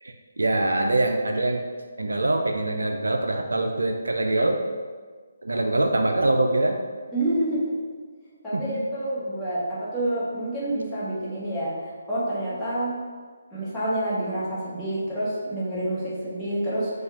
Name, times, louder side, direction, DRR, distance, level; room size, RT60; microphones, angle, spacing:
voice 1, 0.0-1.6 2.0-4.6 5.4-6.8 8.5-8.9, right 2 dB, 70° right, 3 dB, 0.4 m, -24 dB
voice 2, 7.1-7.8 8.4-13.0 13.5-16.9, right 1 dB, 5° left, -12 dB, 1.3 m, -28 dB
4.7 x 2.3 x 4.4 m, 1.5 s
figure-of-eight pair, 145°, 0 cm